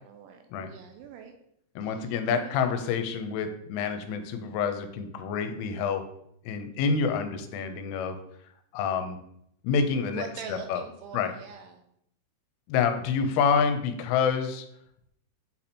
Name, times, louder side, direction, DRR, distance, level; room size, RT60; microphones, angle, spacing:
voice 1, 0.1-1.3 1.8-2.5 10.1-11.8 13.1-13.3, right 7 dB, 85° right, 5 dB, 2.7 m, -43 dB
voice 2, 1.8-6.0 6.5-8.2 8.7-9.2 9.6-10.8 11.1-11.3 12.7-14.7, left 6 dB, 85° left, 7 dB, 3.1 m, -27 dB
8.3 x 2.8 x 4.2 m, 0.73 s
omnidirectional pair, 5.6 m